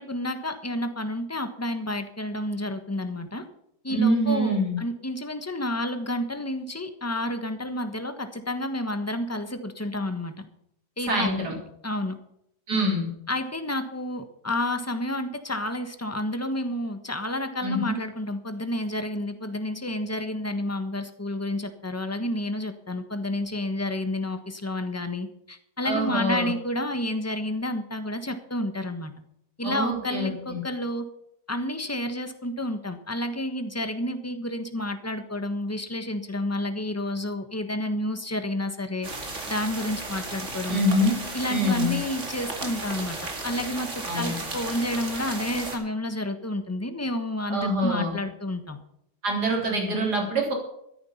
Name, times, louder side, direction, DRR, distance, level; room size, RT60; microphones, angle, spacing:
voice 1, 0.0-3.4 3.8-10.3 11.0-11.5 11.8-12.1 13.3-29.1 29.6-31.0 31.5-39.1 39.5-40.8 41.3-48.8, left 1 dB, 10° left, 8 dB, 1.2 m, -30 dB
voice 2, 3.9-4.8 11.1-11.6 12.7-13.1 17.6-18.0 25.8-26.5 29.6-30.6 40.7-41.2 41.5-42.0 44.1-44.3 47.5-48.1 49.2-50.5, equal, 70° right, 1 dB, 4.3 m, -25 dB
sound 1, 39.0-45.8, right 2 dB, 45° right, 2.8 m, -35 dB
14.0 x 10.5 x 5.7 m, 0.75 s
omnidirectional pair, 1.8 m